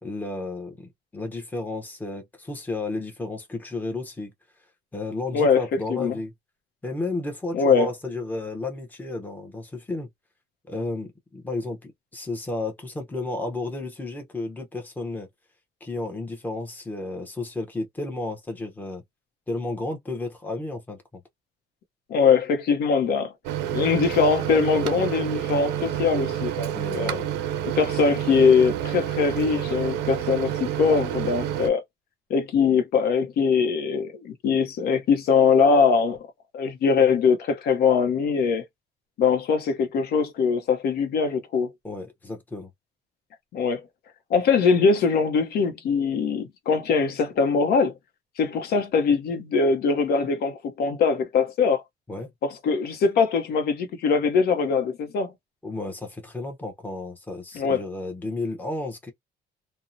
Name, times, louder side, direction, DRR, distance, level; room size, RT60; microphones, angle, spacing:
voice 1, 0.0-4.3 4.9-6.3 6.8-10.1 10.7-15.3 15.8-19.0 19.5-21.0 26.7-27.3 41.8-42.7 52.1-52.3 55.6-59.1, left 2 dB, 10° left, 0.7 m, -32 dB
voice 2, 7.5-7.9 22.1-23.3 23.7-27.2 27.8-31.8 32.3-36.2 36.5-38.7 39.2-41.7 43.5-43.8 44.3-47.9 48.4-51.8 52.4-55.3 57.5-57.8, left 5 dB, 65° left, 0.8 m, -22 dB
Microwave oven, 23.4-31.7, right 11 dB, 90° right, 0.5 m, -29 dB
2.6 x 2.1 x 2.6 m
cardioid pair, 110°, 17 cm